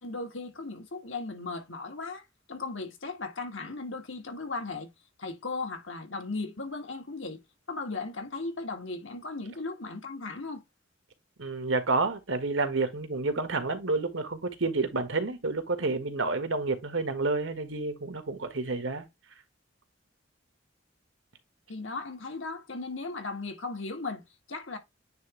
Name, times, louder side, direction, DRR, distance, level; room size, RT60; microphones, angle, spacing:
voice 1, 0.0-2.2 2.5-4.9 5.2-7.4 7.7-10.6 21.7-24.2 24.5-24.8, left 3 dB, 80° left, 2.2 m, -36 dB
voice 2, 11.4-19.1, right 3 dB, 80° right, 1.7 m, -29 dB
9.3 x 3.6 x 3.2 m
head